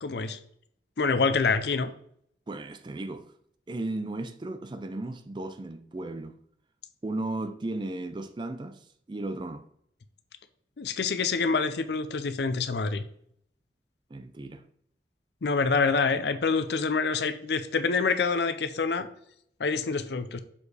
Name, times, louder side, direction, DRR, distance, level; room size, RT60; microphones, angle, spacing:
voice 1, 0.0-0.4 1.0-1.9 10.8-13.0 15.4-19.1 19.6-20.4, left 4 dB, 70° left, 0.5 m, -26 dB
voice 2, 2.5-3.3 3.7-6.4 7.0-8.8 9.1-9.6 14.1-14.6, right 2 dB, 25° right, 0.4 m, -35 dB
7.1 x 4.2 x 3.3 m
head